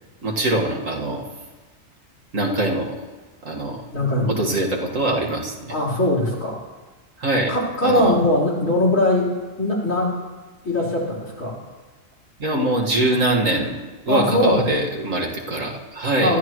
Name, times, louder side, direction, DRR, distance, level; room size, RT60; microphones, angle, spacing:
voice 1, 0.2-1.2 2.3-3.1 3.4-3.8 4.3-5.7 7.2-7.5 7.8-8.1 12.4-16.3, right 1 dB, 70° right, -1 dB, 2.2 m, -23 dB
voice 2, 3.9-4.4 5.7-6.6 7.5-9.3 9.6-10.1 10.6-11.6 14.1-14.7 16.2-16.4, left 1 dB, 75° left, -7 dB, 4.6 m, -20 dB
24.5 x 13.0 x 3.1 m, 1.3 s
omnidirectional pair, 1.4 m